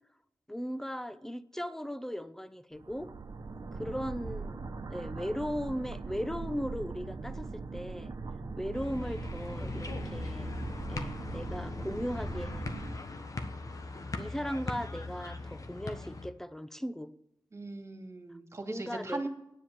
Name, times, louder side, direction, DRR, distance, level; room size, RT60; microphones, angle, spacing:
voice 1, 0.5-3.1 3.7-8.1 8.6-10.5 10.9-12.8 14.2-17.1 18.7-19.3, equal, 5° left, 14 dB, 0.7 m, -37 dB
sound 1, 2.8-13.0, right 4 dB, 55° right, 1.1 m, -41 dB
sound 2, 8.7-16.3, left 2 dB, 45° left, 1.3 m, -39 dB
voice 2, 17.5-19.3, right 2 dB, 35° right, 5 dB, 2.3 m, -39 dB
9.7 x 7.5 x 7.3 m, 0.82 s
cardioid pair, 65°, 8 cm